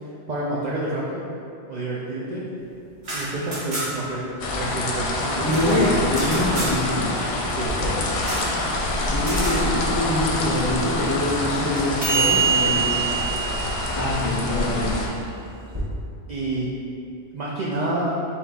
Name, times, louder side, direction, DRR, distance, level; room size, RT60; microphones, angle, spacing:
voice 1, 0.3-1.2 1.7-2.4 3.1-5.9 7.4-7.8 9.4-9.8 16.3-16.7 17.3-18.1, right 2 dB, 60° right, -5 dB, 0.5 m, -29 dB
sound 1, 2.9-4.2 4.4-4.5 4.8-6.8 8.2-8.5 9.2-9.6, right 1 dB, 90° right, 1.5 m, -31 dB
sound 2, 4.4-15.1, left 2 dB, 70° left, 0.8 m, -26 dB
voice 2, 5.4-7.2 9.1-13.0 14.0-15.0, left 1 dB, 25° left, -8 dB, 0.6 m, -24 dB
sound 3, 7.7-15.8, right 6 dB, 25° right, 0.9 m, -27 dB
4.2 x 3.8 x 2.3 m, 2.6 s
omnidirectional pair, 1.2 m